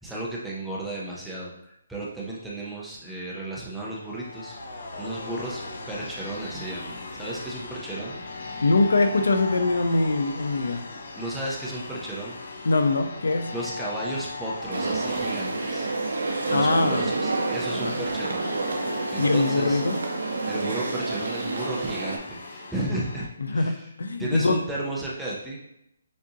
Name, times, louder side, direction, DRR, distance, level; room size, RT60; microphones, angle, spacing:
voice 1, 0.0-4.6 5.0-8.2 11.2-12.4 13.5-15.9 16.5-18.5 19.1-19.8 20.5-23.9 24.2-25.6, right 2 dB, ahead, -6 dB, 0.5 m, -34 dB
sound 1, 3.8-23.3, left 3 dB, 45° left, 0.6 m, -39 dB
voice 2, 8.6-10.9 12.6-13.5 16.5-17.1 17.8-18.0 19.2-20.0 23.4-24.6, left 2 dB, 85° left, 7 dB, 0.6 m, -23 dB
sound 2, 14.7-22.2, right 3 dB, 80° right, 0.8 m, -29 dB
6.5 x 2.6 x 2.7 m, 0.78 s
hypercardioid pair, 180°, 0 cm